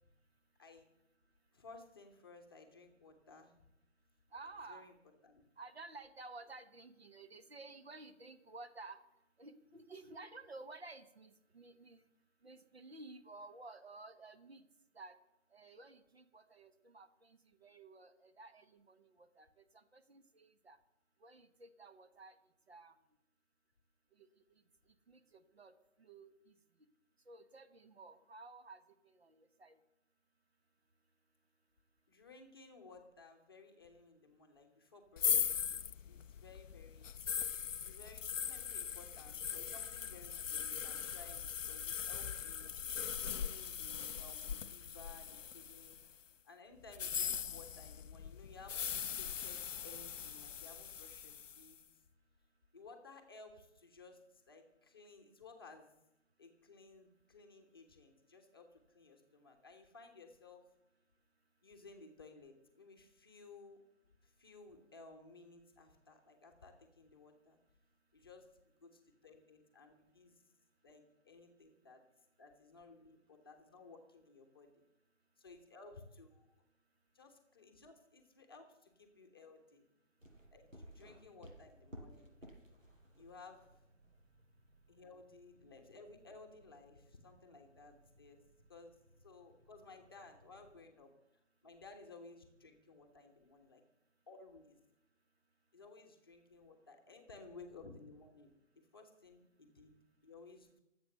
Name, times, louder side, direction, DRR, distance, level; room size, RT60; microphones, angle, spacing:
voice 1, 0.6-0.9 1.5-3.5 4.7-4.9 5.2-5.4 32.1-37.1 37.8-42.9 43.2-46.0 46.4-48.9 49.2-51.8 52.7-55.9 56.4-60.6 61.6-63.8 64.2-67.6 68.1-70.4 70.8-72.0 72.4-74.8 75.4-76.5 77.1-79.9 80.5-82.6 83.2-83.8 84.9-88.4 88.7-91.1 91.6-93.8 94.3-94.8 95.7-100.0 100.2-100.8, left 3 dB, 20° left, 2 dB, 1.0 m, -57 dB
voice 2, 4.3-4.9 5.6-9.0 9.4-12.1 12.4-14.6 14.9-15.1 15.5-19.5 19.7-20.8 21.2-22.3 22.7-22.9 24.2-24.3 25.1-25.7 26.0-26.5 27.3-29.8, right 3 dB, 50° right, 10 dB, 1.4 m, -54 dB
sound 1, 35.2-46.1 46.9-51.7, left 8 dB, 75° left, 0.5 m, -40 dB
sound 2, 80.2-90.8, equal, 80° right, 6.2 m, -60 dB
23.5 x 8.3 x 6.6 m, 0.88 s
figure-of-eight pair, 155°, 39 cm